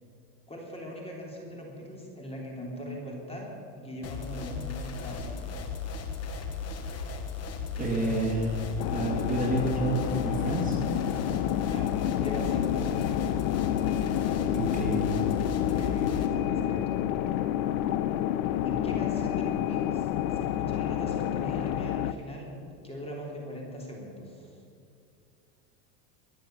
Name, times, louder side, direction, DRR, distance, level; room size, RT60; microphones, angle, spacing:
voice 1, 0.5-3.5 3.8-5.8 11.6-13.0 15.6-16.9 18.6-22.5 22.8-24.6, equal, 10° left, -1 dB, 3.4 m, -40 dB
sound 1, 4.0-16.3, left 4 dB, 30° left, 1.7 m, -36 dB
voice 2, 7.8-8.6 8.9-10.8 14.5-15.2, right 2 dB, 15° right, -3 dB, 2.8 m, -29 dB
sound 2, 8.8-22.1, left 11 dB, 65° left, 0.8 m, -29 dB
23.0 x 7.7 x 7.9 m, 2.4 s
supercardioid pair, 135°, 46 cm